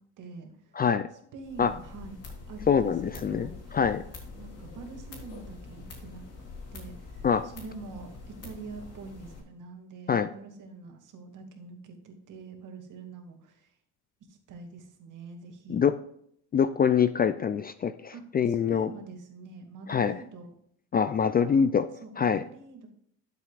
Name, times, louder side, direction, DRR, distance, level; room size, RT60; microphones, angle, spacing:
voice 1, 0.2-0.7 1.3-2.2 2.5-4.1 4.3-6.2 6.7-13.7 14.3-15.9 18.1-18.2 18.5-20.5 21.2-21.6 22.0-22.9, right 4 dB, 60° right, 4 dB, 2.2 m, -45 dB
voice 2, 0.7-1.1 1.6-1.8 2.7-4.0 7.2-7.5 10.1-10.3 15.7-16.0 16.5-18.9 19.9-20.2 20.9-21.9 22.2-22.4, left 7 dB, 25° left, 13 dB, 0.3 m, -25 dB
sound 1, 1.4-9.4, left 3 dB, 45° left, 3.6 m, -45 dB
12.0 x 7.7 x 2.5 m, 0.68 s
cardioid pair, 120°, 36 cm